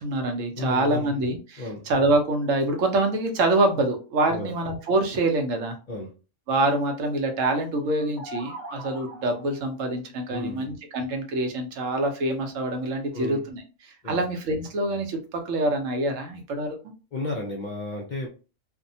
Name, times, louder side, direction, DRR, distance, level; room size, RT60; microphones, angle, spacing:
voice 1, 0.0-5.8 6.5-16.8, right 2 dB, 75° right, 4 dB, 1.0 m, -25 dB
voice 2, 0.6-1.1 1.6-1.8 4.3-4.5 5.9-6.1 10.3-10.7 13.1-13.5 14.0-14.2 17.1-18.3, left 2 dB, 55° left, -1 dB, 0.5 m, -33 dB
sound 1, 7.8-9.6, right 1 dB, 5° left, 0.6 m, -41 dB
2.7 x 2.1 x 2.6 m, 0.34 s
omnidirectional pair, 1.3 m